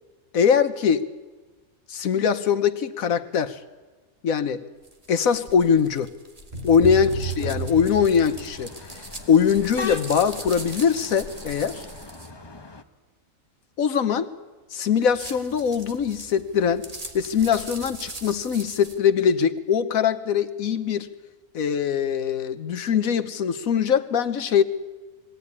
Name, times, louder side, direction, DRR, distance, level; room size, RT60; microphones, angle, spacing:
voice 1, 0.3-1.1 1.9-3.6 4.2-4.7 5.1-6.1 6.6-8.7 9.3-11.8 13.8-14.3 14.7-16.9 17.1-21.1 21.5-24.6, left 7 dB, 90° left, 1.5 m, -22 dB
sound 1, 4.8-12.3 15.0-19.0, right 2 dB, 25° right, 1.9 m, -41 dB
sound 2, 6.5-8.8, right 4 dB, 45° right, 5.8 m, -32 dB
sound 3, 6.9-12.8, left 4 dB, 20° left, 0.9 m, -39 dB
21.5 x 17.0 x 9.7 m
omnidirectional pair, 1.4 m